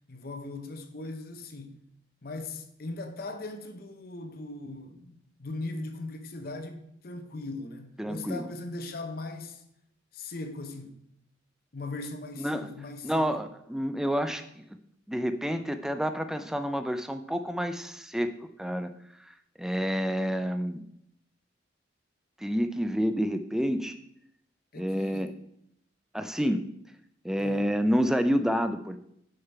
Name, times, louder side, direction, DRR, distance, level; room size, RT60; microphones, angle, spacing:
voice 1, 0.1-1.8 2.2-9.6 10.1-11.0 11.7-13.4 24.7-25.3 27.4-27.7, left 2 dB, 50° left, 0.7 m, -39 dB
voice 2, 8.0-8.5 12.4-12.7 13.0-14.6 15.1-18.3 18.6-18.9 19.6-20.8 22.4-23.9 24.8-25.3 26.1-26.7 27.2-29.0, equal, 5° right, 0.3 m, -28 dB
6.5 x 5.7 x 4.6 m
head